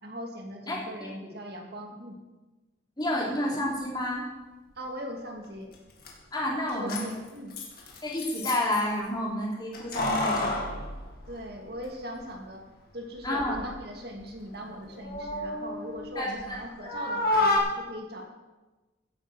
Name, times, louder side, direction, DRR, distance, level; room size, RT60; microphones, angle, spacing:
voice 1, 0.0-2.2 4.8-5.7 6.6-7.6 11.3-12.7 12.9-17.5 17.8-18.2, equal, 55° right, 2 dB, 2.4 m, -40 dB
voice 2, 3.0-4.2 6.3-7.0 8.0-10.6 13.2-13.6 16.1-16.9, left 1 dB, 20° left, -3 dB, 3.3 m, -30 dB
Keys jangling, 5.7-5.8 6.0-6.1 6.7-8.8 9.7-11.9 12.2-12.3 13.2-13.7 14.1-16.6 16.8-17.6, left 2 dB, 50° left, 2.8 m, -30 dB
15.5 x 8.7 x 6.2 m, 1.2 s
head